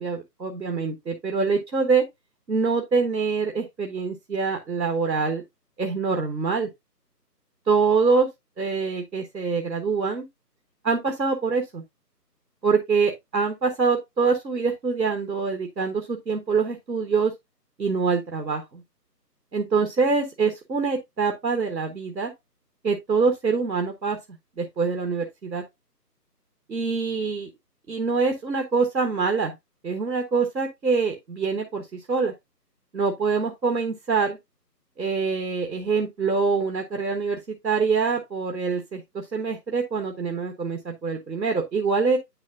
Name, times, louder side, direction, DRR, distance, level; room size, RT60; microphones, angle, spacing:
voice 1, 0.0-2.0 2.5-5.4 5.8-6.7 7.7-8.3 8.6-10.2 10.8-11.8 12.6-17.3 17.8-18.8 19.5-22.3 22.8-24.2 24.6-25.6 26.7-27.5 27.9-29.5 29.8-32.3 32.9-34.4 35.0-42.2, right 4 dB, 90° right, 1.3 m, -25 dB
9.6 x 4.6 x 2.4 m
figure-of-eight pair, 155°, 50 cm